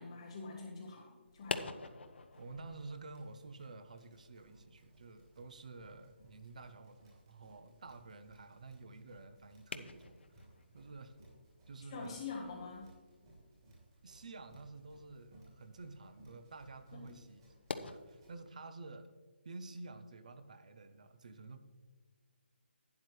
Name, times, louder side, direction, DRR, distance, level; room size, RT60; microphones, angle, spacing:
voice 1, 0.0-1.8 11.8-12.9 16.9-17.0, left 4 dB, 15° left, -4 dB, 0.9 m, -45 dB
sound 1, 1.2-17.9, left 3 dB, 70° left, 0.8 m, -50 dB
Run, 2.1-18.3, right 1 dB, 25° right, 2.6 m, -63 dB
voice 2, 2.4-10.5 10.7-11.1 11.7-12.2 14.0-17.4 17.7-19.1 19.4-21.6, right 3 dB, 40° right, 10 dB, 0.7 m, -51 dB
12.0 x 9.3 x 3.2 m, 1.4 s
hypercardioid pair, 180°, 6 cm